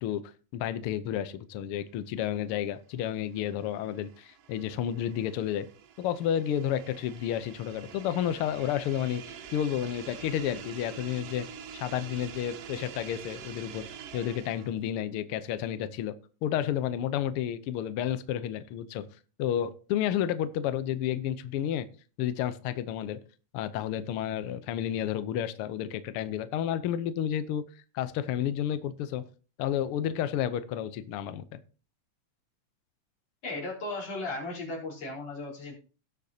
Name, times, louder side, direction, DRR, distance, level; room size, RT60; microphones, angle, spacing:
voice 1, 0.0-5.7 6.0-11.5 11.7-13.9 14.1-16.1 16.4-19.1 19.4-21.9 22.2-23.2 23.5-27.6 27.9-29.2 29.6-31.4, left 10 dB, 80° left, 12 dB, 1.2 m, -31 dB
sound 1, 2.9-14.8, right 8 dB, 65° right, 1.8 m, -46 dB
voice 2, 33.4-35.8, left 2 dB, 55° left, -4 dB, 5.3 m, -36 dB
18.0 x 6.7 x 2.8 m, 0.37 s
omnidirectional pair, 3.4 m